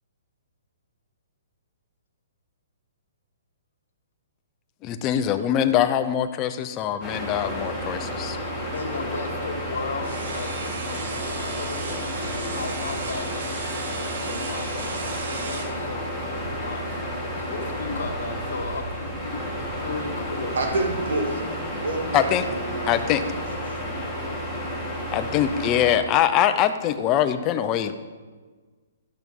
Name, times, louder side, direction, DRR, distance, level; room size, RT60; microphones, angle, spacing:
voice 1, 4.8-8.4 22.1-22.5 22.9-23.2 25.1-27.9, left 10 dB, 25° left, 10 dB, 0.6 m, -23 dB
sound 1, 7.0-26.0, equal, 5° left, 2.7 m, -31 dB
voice 2, 8.7-17.0 17.3-20.6, left 4 dB, 85° left, 4 dB, 1.9 m, -36 dB
sound 2, 10.0-15.7, right 5 dB, 60° right, 1.6 m, -36 dB
voice 3, 20.5-21.4 21.7-23.4, right 2 dB, 80° right, 3 dB, 2.0 m, -29 dB
13.0 x 6.2 x 5.4 m, 1.4 s
hypercardioid pair, 155°, 0 cm